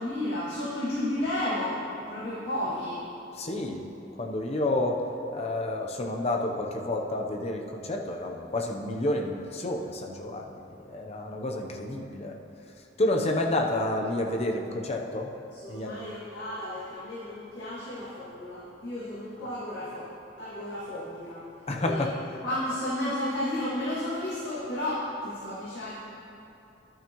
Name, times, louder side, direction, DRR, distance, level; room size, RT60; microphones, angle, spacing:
voice 1, 0.0-3.0 15.5-20.1 20.4-21.5 21.8-22.1 22.4-25.9, left 1 dB, 75° left, -12 dB, 2.1 m, -32 dB
voice 2, 3.4-3.9 4.2-5.0 5.3-12.3 13.0-15.3 15.7-16.0 21.7-22.2, left 1 dB, 35° left, 2 dB, 0.7 m, -29 dB
12.0 x 8.9 x 3.0 m, 2.9 s
head